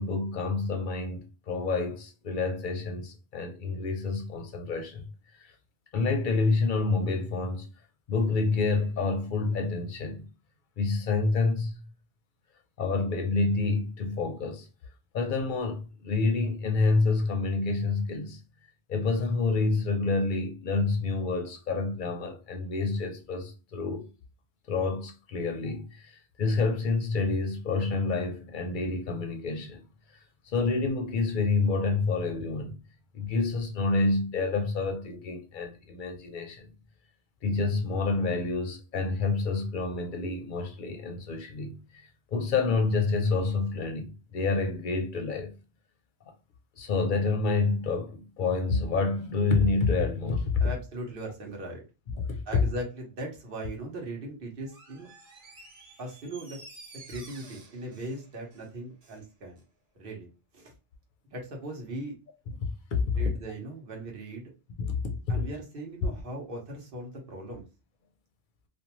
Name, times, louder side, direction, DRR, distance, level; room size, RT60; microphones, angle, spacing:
voice 1, 0.0-5.1 5.4-5.5 5.9-7.7 8.1-10.3 10.8-11.8 12.8-14.7 15.1-18.4 18.9-24.0 24.7-29.8 30.5-32.8 33.1-36.7 37.4-42.0 42.3-45.5 46.8-50.6 52.2-52.4 62.9-63.2 64.8-65.2, left 3 dB, 60° left, 0.6 m, -28 dB
voice 2, 50.6-51.8 52.5-55.1 56.0-56.6 57.1-59.6 60.0-60.7 61.2-62.2 63.2-64.5 65.3-67.6, right 1 dB, 60° right, 1.1 m, -39 dB
Door, 54.7-59.3 59.6-59.7, right 3 dB, 45° right, 0.6 m, -51 dB
2.5 x 2.1 x 2.9 m
omnidirectional pair, 1.1 m